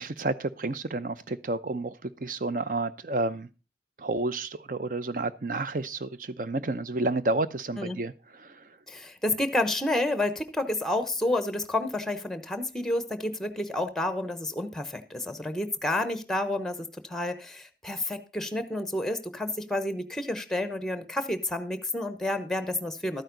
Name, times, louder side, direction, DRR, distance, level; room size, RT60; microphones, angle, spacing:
voice 1, 0.0-3.5 4.0-8.7, right 2 dB, 50° right, 13 dB, 0.7 m, -30 dB
voice 2, 8.9-23.2, left 1 dB, 5° left, 11 dB, 0.9 m, -30 dB
12.5 x 9.1 x 3.9 m, 0.31 s
head